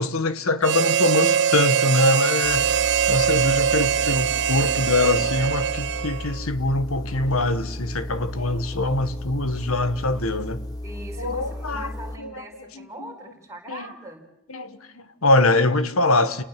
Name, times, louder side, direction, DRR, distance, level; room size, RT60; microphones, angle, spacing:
voice 1, 0.0-2.7 3.1-10.6 11.2-11.9 12.2-12.3 12.7-12.9 13.7-13.9 14.5-16.4, left 2 dB, 80° left, 1.6 m, -23 dB
Harmonica, 0.6-6.4, right 8 dB, 55° right, 1.0 m, -22 dB
sound 1, 2.4-12.2, left 1 dB, 20° left, 1.9 m, -34 dB
voice 2, 10.8-14.2, right 1 dB, 15° right, 4.7 m, -40 dB
29.5 x 19.0 x 7.6 m
head